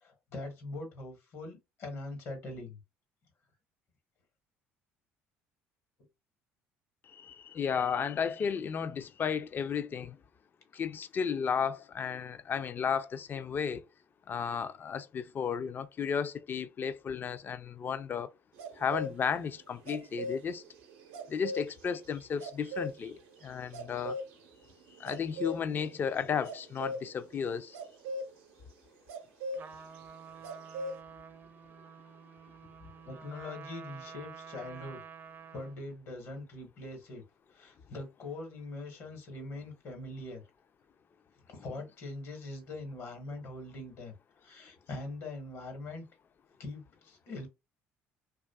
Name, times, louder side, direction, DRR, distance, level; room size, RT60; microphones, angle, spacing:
voice 1, 0.0-2.8 33.0-35.0 35.5-37.2 37.5-40.4 41.5-44.1 44.4-46.0 46.6-47.5, left 2 dB, 65° left, 1.1 m, -42 dB
voice 2, 7.1-10.2 10.7-13.8 14.3-18.3 18.8-20.6 21.3-24.2 25.0-27.8, left 7 dB, 40° left, 0.4 m, -33 dB
sound 1, 18.6-19.1 19.6-28.3 29.1-29.6 30.0-30.1 30.4-31.0, equal, 90° right, 0.6 m, -40 dB
Trumpet, 29.5-35.8, right 6 dB, 40° right, 0.5 m, -49 dB
2.6 x 2.3 x 2.3 m
supercardioid pair, 80°, 5 cm